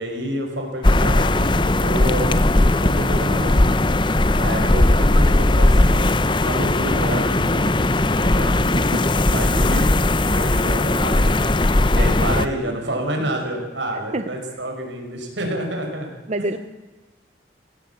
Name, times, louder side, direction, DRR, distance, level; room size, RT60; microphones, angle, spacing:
voice 1, 0.0-1.5 1.8-2.3 2.8-3.6 4.3-7.7 8.1-9.0 9.3-9.9 10.3-11.5 11.9-16.1 16.4-16.6, right 1 dB, 80° right, 2 dB, 5.7 m, -28 dB
sound 1, 0.8-12.5, left 2 dB, 25° left, 0.7 m, -18 dB
voice 2, 8.7-9.0 12.7-12.8 13.9-14.3 16.3-16.6, right 2 dB, 35° right, 10 dB, 0.7 m, -27 dB
sound 2, 13.8-14.7, right 1 dB, 5° right, 3.1 m, -44 dB
19.5 x 17.0 x 8.5 m, 1.2 s
head